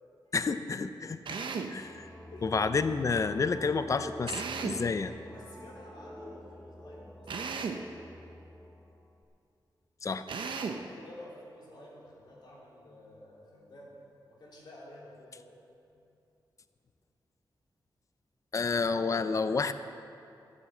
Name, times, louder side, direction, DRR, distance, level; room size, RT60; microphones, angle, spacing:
voice 1, 0.3-1.4 1.7-2.1 2.4-4.3 4.6-5.1 10.0-10.2 18.5-19.7, left 4 dB, 40° left, 11 dB, 0.5 m, -29 dB
Drill, 1.3-1.8 4.3-4.9 7.3-7.9 10.3-10.9, right 5 dB, 75° right, 0.8 m, -35 dB
sound 1, 1.7-9.2, left 1 dB, 5° left, 0.8 m, -48 dB
voice 2, 4.9-7.3 10.5-15.5 15.7-16.0, left 1 dB, 60° left, -5 dB, 3.1 m, -51 dB
12.5 x 8.2 x 7.5 m, 2.6 s
wide cardioid pair, 150°, 8 cm